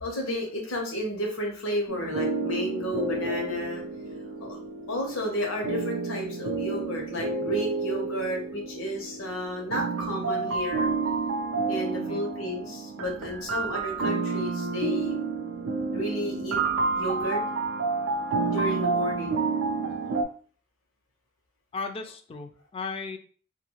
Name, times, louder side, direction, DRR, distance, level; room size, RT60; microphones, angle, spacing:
voice 1, 0.0-3.8 4.4-4.6 4.9-10.9 11.7-15.1 15.9-16.6 16.9-17.4 18.5-19.4, left 1 dB, 90° left, 0 dB, 1.0 m, -32 dB
sound 1, 1.9-20.2, right 4 dB, 80° right, 0.4 m, -30 dB
voice 2, 21.7-23.2, left 4 dB, 30° left, 6 dB, 0.3 m, -36 dB
2.5 x 2.4 x 2.9 m, 0.43 s
head